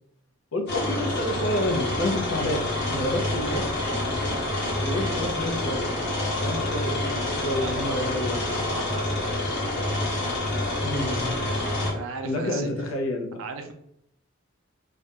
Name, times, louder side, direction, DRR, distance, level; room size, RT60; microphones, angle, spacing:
voice 1, 0.5-3.7 4.8-5.9 6.4-8.4 10.8-11.5 12.2-13.4, left 1 dB, 75° left, 3 dB, 0.5 m, -29 dB
sound 1, 0.7-11.9, left 1 dB, 60° left, 0.9 m, -27 dB
voice 2, 7.6-9.3 11.9-12.7 13.4-13.7, right 5 dB, 80° right, 6 dB, 0.4 m, -37 dB
2.3 x 2.1 x 2.7 m, 0.74 s
head